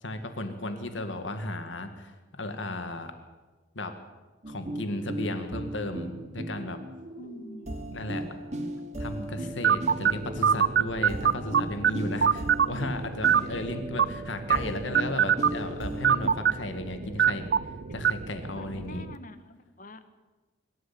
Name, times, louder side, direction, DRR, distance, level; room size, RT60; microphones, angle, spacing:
voice 1, 0.0-3.1 3.7-3.9 4.5-6.8 7.9-8.2 9.0-17.5 17.9-19.1, left 1 dB, 80° left, 8 dB, 2.1 m, -35 dB
sound 1, 4.4-16.3, right 1 dB, 35° right, 2.9 m, -37 dB
voice 2, 7.2-7.8 9.4-9.5 13.5-13.6 18.6-20.0, left 1 dB, 45° left, 11 dB, 1.5 m, -46 dB
sound 2, 9.6-19.2, right 8 dB, 60° right, 0.6 m, -26 dB
24.0 x 13.0 x 8.5 m, 1.3 s
head